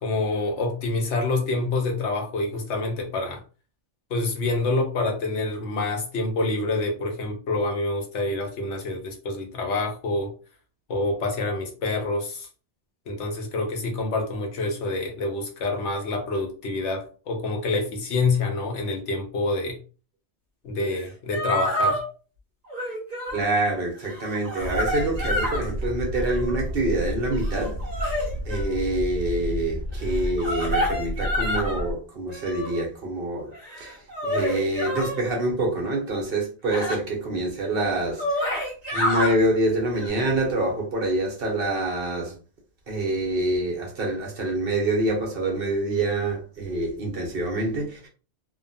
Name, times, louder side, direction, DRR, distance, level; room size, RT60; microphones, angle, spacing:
voice 1, 0.0-3.4 4.1-10.3 10.9-12.5 13.1-19.8 20.6-22.0, left 2 dB, 90° left, 1.1 m, -27 dB
sound 1, 21.0-21.1 21.3-22.0 22.7-23.4 24.0-25.7 26.1-26.6 27.3-28.7 30.1-31.8 32.3-32.8 33.5-35.2 36.7-37.0 37.6-37.7 38.0-39.3 39.9-40.1, equal, 40° right, 1.1 m, -28 dB
voice 2, 23.3-27.8 28.4-33.5 33.8-33.9 34.2-38.6 38.9-42.3 42.9-48.1, right 2 dB, 60° right, 1.0 m, -26 dB
sound 2, 24.6-31.9, equal, 65° left, 1.0 m, -31 dB
2.7 x 2.2 x 2.6 m
omnidirectional pair, 1.1 m